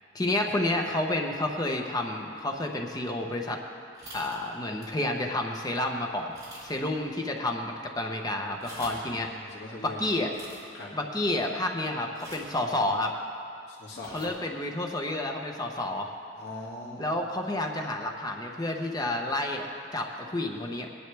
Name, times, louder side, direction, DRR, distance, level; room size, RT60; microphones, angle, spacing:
voice 1, 0.1-3.6 4.1-6.3 6.6-9.3 9.8-10.3 10.9-13.1 14.1-16.1 17.0-19.7 19.9-20.9, left 1 dB, 20° left, 2 dB, 0.9 m, -30 dB
sound 1, 3.9-4.4 4.8-5.0 5.5-5.6 6.3-6.9 7.2-7.3 8.5-9.1 10.3-10.6 12.1-12.6 14.0-14.3, right 1 dB, 20° right, 3.5 m, -45 dB
voice 2, 8.8-10.2 10.7-10.9 13.7-14.3 16.3-17.0, left 2 dB, 70° left, -5 dB, 2.2 m, -42 dB
20.0 x 11.0 x 3.4 m, 2.4 s
head